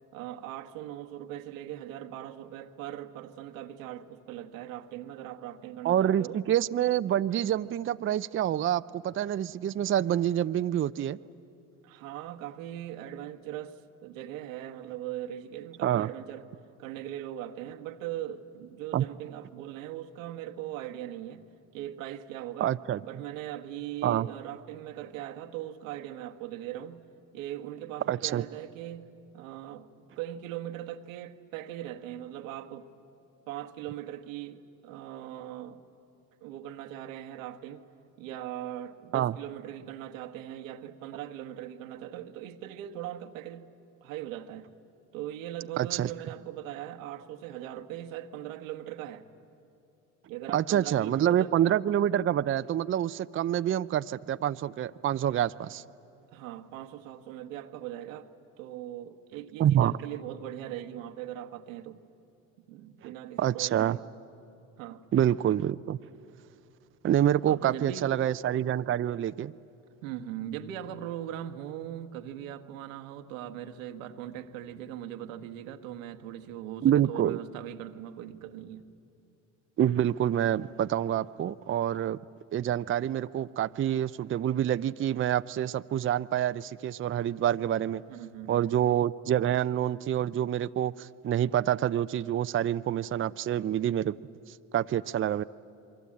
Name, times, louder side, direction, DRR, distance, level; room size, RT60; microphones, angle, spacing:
voice 1, 0.1-6.4 11.8-16.5 16.8-21.5 21.7-22.7 23.0-27.0 27.3-29.9 30.2-32.9 33.5-35.8 36.4-37.8 38.2-43.7 44.0-44.7 45.1-49.3 50.3-51.5 51.9-52.0 56.3-58.3 58.6-62.0 62.7-64.0 64.8-65.0 67.5-68.2 70.0-78.8 88.1-88.6, right 12 dB, 85° right, 1.3 m, -40 dB
voice 2, 5.8-11.2 15.8-16.1 18.9-19.0 22.6-23.0 24.0-24.3 28.1-28.4 39.1-39.3 45.8-46.1 50.5-55.8 59.6-60.0 63.4-64.0 65.1-66.0 67.0-69.5 76.8-77.4 79.8-82.2 82.5-88.0 88.5-94.1 94.7-95.4, right 11 dB, 35° right, 0.5 m, -27 dB
27.5 x 23.0 x 8.6 m
hypercardioid pair, 65°, 38 cm